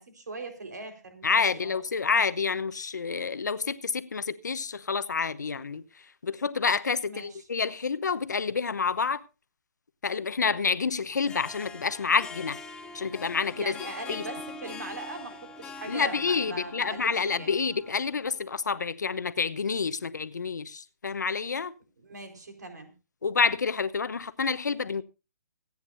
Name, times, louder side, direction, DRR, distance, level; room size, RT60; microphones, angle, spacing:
voice 1, 0.0-1.8 7.0-7.5 13.5-17.6 22.0-22.9, right 2 dB, 75° right, 4.4 m, -40 dB
voice 2, 1.2-5.8 6.2-9.2 10.0-12.6 12.9-13.7 14.1-14.2 15.9-21.7 23.2-25.0, left 5 dB, 80° left, 1.0 m, -28 dB
Harp, 11.1-18.4, left 3 dB, 10° left, 1.1 m, -43 dB
25.5 x 9.6 x 2.7 m
hypercardioid pair, 145°, 9 cm